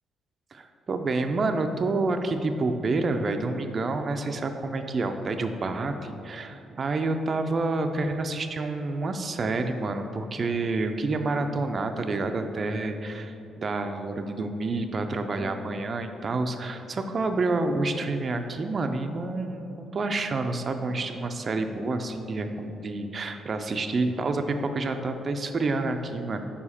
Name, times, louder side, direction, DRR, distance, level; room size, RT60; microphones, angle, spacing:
voice 1, 0.5-26.5, right 3 dB, 40° right, 6 dB, 0.4 m, -28 dB
5.0 x 4.8 x 4.2 m, 2.9 s
cardioid pair, 90°, 0 cm